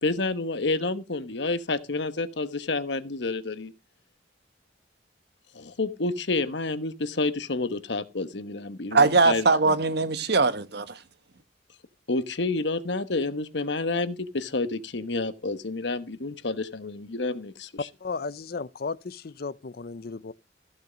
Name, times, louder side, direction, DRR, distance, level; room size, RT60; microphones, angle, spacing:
voice 1, 0.0-3.7 5.5-9.5 12.1-17.9, left 3 dB, 70° left, 1.1 m, -29 dB
voice 2, 8.9-11.0, right 3 dB, 60° right, 1.1 m, -21 dB
voice 3, 18.0-20.3, left 4 dB, 55° left, 0.6 m, -35 dB
14.5 x 6.7 x 5.0 m
head